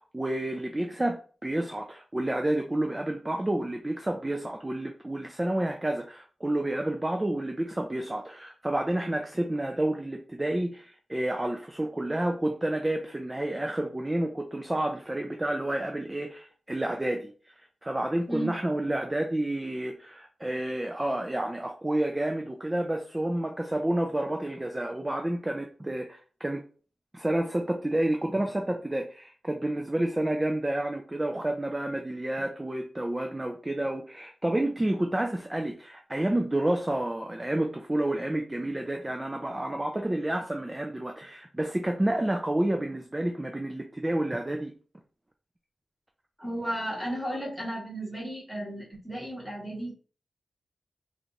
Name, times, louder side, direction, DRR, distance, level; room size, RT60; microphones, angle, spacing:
voice 1, 0.1-17.5 17.8-26.6 27.1-44.7, right 1 dB, 15° right, 0.4 m, -30 dB
voice 2, 18.3-18.6 46.4-49.9, right 1 dB, 5° left, 1.4 m, -34 dB
3.3 x 2.5 x 4.0 m
wide cardioid pair, 145°, 0 cm